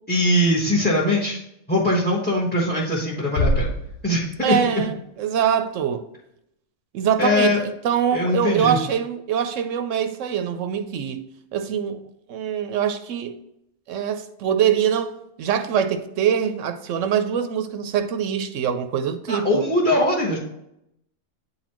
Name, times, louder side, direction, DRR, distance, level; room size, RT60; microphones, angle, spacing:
voice 1, 0.1-1.4 1.7-3.7 4.0-4.8 7.2-7.6 8.1-8.8 19.3-20.4, left 1 dB, 10° left, 1.1 m, -21 dB
sound 1, 3.4-5.3, equal, 80° left, 1.1 m, -26 dB
voice 2, 4.4-6.0 6.9-13.4 13.9-19.6, right 8 dB, 80° right, 0.9 m, -24 dB
9.1 x 4.1 x 3.0 m
omnidirectional pair, 1.3 m